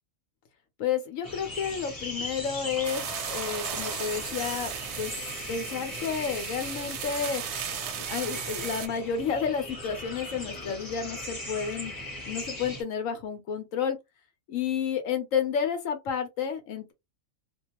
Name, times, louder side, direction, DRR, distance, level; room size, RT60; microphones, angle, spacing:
voice 1, 0.8-5.1 5.5-7.4 8.1-11.9 12.2-14.0 14.5-16.9, left 7 dB, 80° left, 1.1 m, -31 dB
sound 1, 1.2-12.8, left 1 dB, 20° left, 0.7 m, -39 dB
sound 2, 2.8-8.9, right 8 dB, 65° right, 0.8 m, -36 dB
2.4 x 2.3 x 2.8 m
omnidirectional pair, 1.4 m